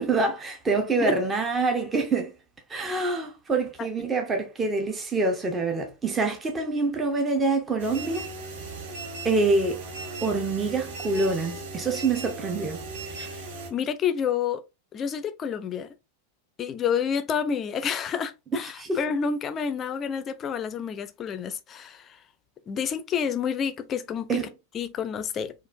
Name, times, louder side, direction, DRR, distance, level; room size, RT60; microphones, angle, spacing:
voice 1, 0.0-2.3 2.7-8.3 9.2-9.8 10.2-12.8 18.7-19.0 24.3-24.5, right 3 dB, 20° right, 0.7 m, -26 dB
sound 1, 7.8-13.7, right 3 dB, 55° right, 0.9 m, -37 dB
voice 2, 13.7-14.6 14.9-15.9 16.6-22.2 22.7-24.4 24.7-25.5, left 7 dB, 25° left, 0.4 m, -29 dB
4.2 x 2.5 x 2.5 m
figure-of-eight pair, 90°, 0 cm